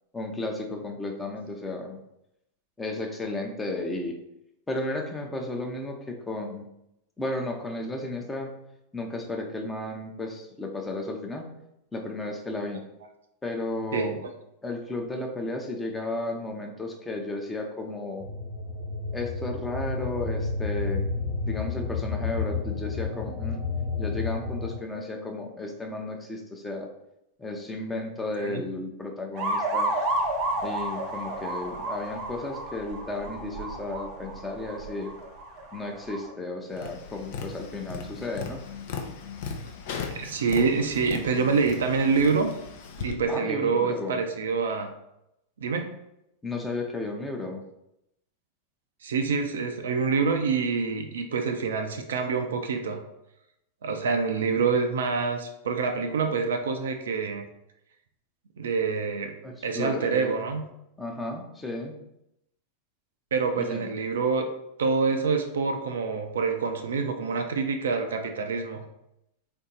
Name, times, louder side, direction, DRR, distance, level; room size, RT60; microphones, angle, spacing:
voice 1, 0.1-2.0 2.8-4.2 4.7-6.7 7.2-8.5 8.9-11.5 11.9-12.8 13.4-14.2 14.6-18.3 19.1-21.0 21.5-23.6 24.0-26.9 27.4-29.9 30.6-35.1 35.7-38.6 43.3-44.2 46.4-47.6 54.5-54.6 59.4-60.3 61.0-62.0 63.6-63.9, left 2 dB, 10° left, 2 dB, 0.7 m, -33 dB
sound 1, 18.2-24.7, left 4 dB, 30° left, 1.1 m, -31 dB
sound 2, 29.4-36.3, right 1 dB, 40° right, 0.7 m, -31 dB
Tap, 36.7-43.1, left 5 dB, 50° left, 0.5 m, -37 dB
voice 2, 40.1-42.5 43.0-44.9 45.6-45.9 49.0-53.0 53.8-57.5 58.6-59.3 59.6-60.6 63.3-64.5 64.8-68.8, right 5 dB, 65° right, 6 dB, 0.4 m, -26 dB
3.7 x 2.6 x 3.8 m, 0.83 s
figure-of-eight pair, 90°, 0 cm